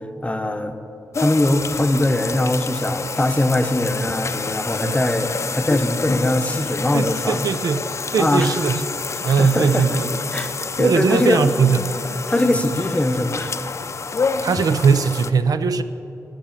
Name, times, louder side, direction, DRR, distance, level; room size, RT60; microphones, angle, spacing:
voice 1, 0.2-0.8 1.2-7.4 8.2-8.5 9.3-10.0 10.3-10.5 10.8-11.5 12.3-13.5, left 1 dB, 20° left, 7 dB, 0.8 m, -21 dB
sound 1, 1.1-15.3, left 4 dB, 50° left, 0.5 m, -28 dB
voice 2, 6.9-7.9 8.1-8.8 9.2-10.1 10.8-12.0 12.5-12.6 14.4-15.8, right 5 dB, 80° right, 12 dB, 0.5 m, -20 dB
10.0 x 8.5 x 7.2 m, 2.8 s
cardioid pair, 75°, 6 cm